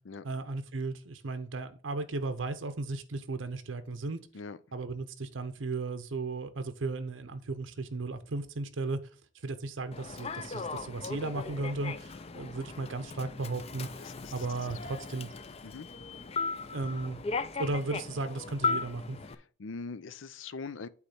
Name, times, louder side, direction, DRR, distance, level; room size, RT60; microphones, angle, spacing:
voice 1, 0.2-4.2 4.7-9.0 9.4-15.3 16.6-17.3 17.6-19.2, right 3 dB, 80° right, 0.7 m, -35 dB
Human voice / Subway metro underground, 9.9-19.3, left 4 dB, 30° left, 0.5 m, -37 dB
voice 2, 14.0-14.5 15.6-15.9 19.3-20.9, left 4 dB, 80° left, 0.5 m, -42 dB
8.4 x 3.2 x 5.7 m
head